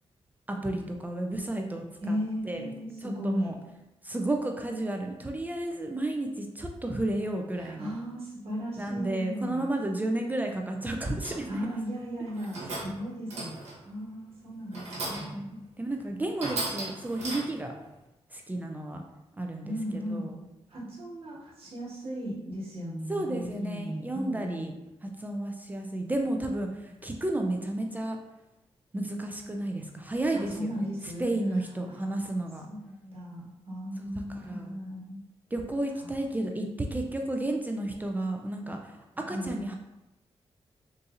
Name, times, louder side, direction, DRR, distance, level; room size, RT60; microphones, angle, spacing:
voice 1, 0.5-2.2 2.4-2.7 3.0-3.5 4.0-8.0 8.8-11.5 15.1-17.7 18.3-19.0 19.4-19.7 20.1-20.4 23.1-24.7 25.0-28.2 28.9-30.7 31.2-32.7 34.0-34.7 35.5-39.8, right 1 dB, 15° right, 3 dB, 0.3 m, -32 dB
voice 2, 2.0-3.5 7.6-9.6 11.5-15.6 19.6-20.3 20.7-24.7 26.7-26.9 30.3-31.3 31.8-32.1 32.7-35.2 36.0-36.1 39.3-39.6, equal, 60° right, -7 dB, 1.4 m, -36 dB
sound 1, 11.2-11.6 12.3-13.0 13.3-13.8 14.7-15.4 15.9-16.0 16.4-17.7, right 2 dB, 90° right, 1.1 m, -36 dB
4.0 x 2.6 x 2.5 m, 0.96 s
wide cardioid pair, 115°, 11 cm